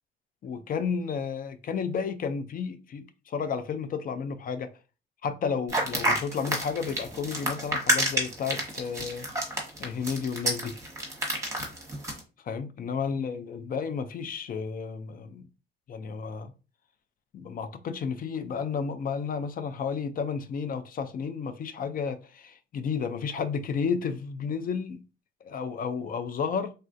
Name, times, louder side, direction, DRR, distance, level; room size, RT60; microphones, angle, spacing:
voice 1, 0.4-4.7 5.2-9.3 9.8-10.8 12.4-15.5 15.9-16.5 17.3-25.0 25.4-26.7, left 6 dB, 45° left, 0.4 m, -32 dB
sound 1, 5.7-12.2, right 1 dB, 15° right, 1.0 m, -29 dB
3.2 x 2.3 x 2.5 m
cardioid pair, 90°, 20 cm